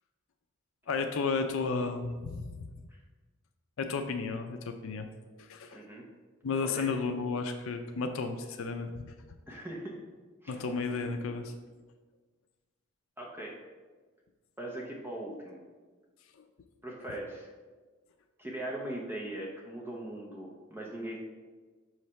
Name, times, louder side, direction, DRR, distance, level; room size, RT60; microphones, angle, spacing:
voice 1, 0.9-2.8 3.8-5.1 5.4-5.8 6.4-9.1 10.5-11.5 16.4-16.5 17.1-17.2, left 4 dB, 75° left, 6 dB, 0.4 m, -33 dB
voice 2, 5.7-6.0 6.7-6.9 9.5-10.0 10.4-10.5 13.2-13.6 14.6-15.6 16.8-17.5 18.4-21.2, right 1 dB, 10° right, -3 dB, 0.7 m, -40 dB
6.4 x 3.2 x 5.6 m, 1.4 s
head